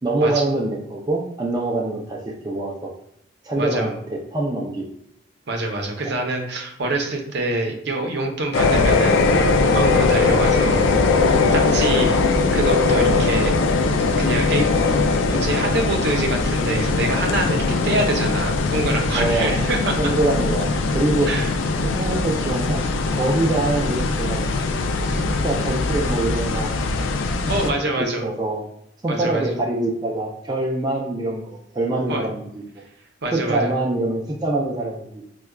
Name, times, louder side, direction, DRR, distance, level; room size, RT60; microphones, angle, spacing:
voice 1, 0.0-2.9 3.4-4.9 6.0-6.2 11.9-12.0 19.1-19.7 20.0-21.4 21.8-22.8 23.1-24.4 25.0-26.7 27.4-28.7 29.0-32.6 33.3-35.3, right 2 dB, 20° right, -1 dB, 0.3 m, -25 dB
voice 2, 3.6-3.9 5.5-12.2 12.5-13.5 14.2-14.7 15.3-20.1 21.3-21.5 27.5-28.3 29.1-29.5 32.1-32.2 33.2-33.7, right 2 dB, 60° right, 2 dB, 0.6 m, -25 dB
sound 1, 8.5-27.7, left 3 dB, 90° left, 0.4 m, -20 dB
4.7 x 2.2 x 2.2 m, 0.74 s
head